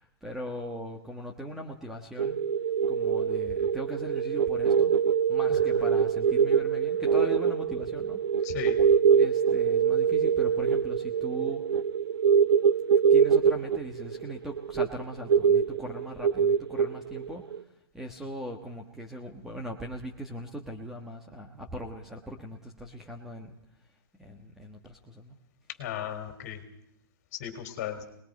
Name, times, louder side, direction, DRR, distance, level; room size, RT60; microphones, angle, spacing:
voice 1, 0.0-2.4 2.9-4.9 5.3-8.2 9.2-11.7 13.1-17.4 17.9-23.6 24.2-25.4, equal, 5° right, 2 dB, 1.4 m, -39 dB
sound 1, 2.2-17.6, right 7 dB, 85° right, 1.1 m, -24 dB
voice 2, 5.5-5.8 8.4-8.8 25.8-26.6 27.3-28.0, left 10 dB, 40° left, 7 dB, 4.2 m, -36 dB
23.5 x 21.0 x 5.4 m, 0.77 s
hypercardioid pair, 165°, 12 cm